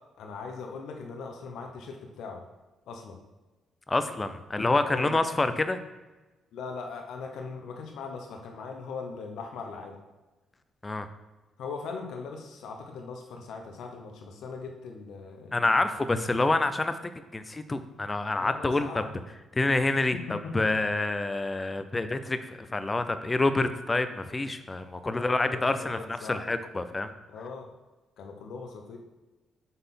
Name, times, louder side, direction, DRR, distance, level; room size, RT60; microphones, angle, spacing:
voice 1, 0.2-2.4 2.9-3.2 4.8-5.2 6.5-10.0 11.6-15.9 18.3-19.1 20.1-20.7 25.1-26.4 27.3-27.7 28.2-29.0, left 4 dB, 75° left, 2 dB, 0.8 m, -40 dB
voice 2, 3.9-5.8 10.8-11.1 15.5-17.0 17.3-19.0 19.5-27.1, left 2 dB, 20° left, 10 dB, 0.5 m, -27 dB
5.3 x 4.1 x 5.7 m, 1.1 s
cardioid pair, 90°, 0 cm